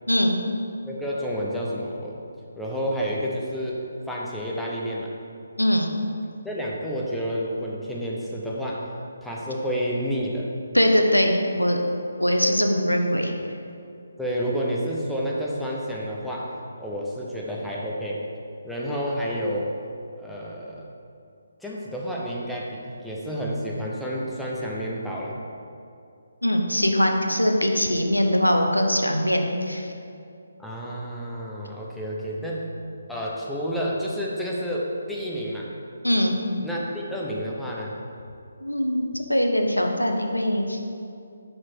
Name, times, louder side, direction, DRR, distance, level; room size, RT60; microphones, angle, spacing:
voice 1, 0.1-0.4 5.6-5.9 10.7-11.8 12.2-13.3 26.4-29.9 36.0-36.3 38.6-40.8, equal, 85° left, 3 dB, 0.7 m, -22 dB
voice 2, 0.8-2.2 2.6-5.1 6.4-8.9 9.2-10.5 14.2-16.5 16.8-18.2 18.6-19.7 20.2-20.8 21.6-25.4 30.6-32.7 33.1-35.7 36.6-38.0, equal, ahead, -6 dB, 0.6 m, -30 dB
6.0 x 4.4 x 4.6 m, 2.5 s
figure-of-eight pair, 145°, 0 cm